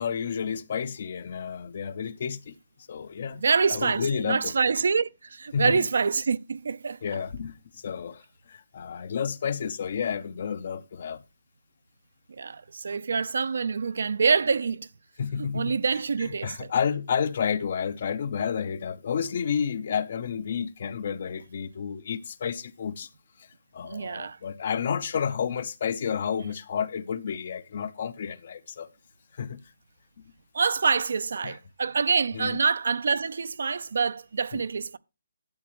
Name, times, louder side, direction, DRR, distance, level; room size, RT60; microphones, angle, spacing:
voice 1, 0.0-2.5 2.9-3.4 3.7-4.5 5.5-5.9 7.0-8.2 8.5-11.2 15.2-15.8 16.2-23.1 23.7-28.9 29.4-29.6 31.4-31.6 32.3-32.6 34.5-34.6, left 7 dB, 35° left, 0.6 m, -30 dB
voice 2, 3.3-7.0 12.3-14.9 15.4-16.7 23.8-24.4 30.5-35.0, right 5 dB, 55° right, 0.5 m, -26 dB
12.5 x 8.3 x 3.0 m
hypercardioid pair, 180°, 0 cm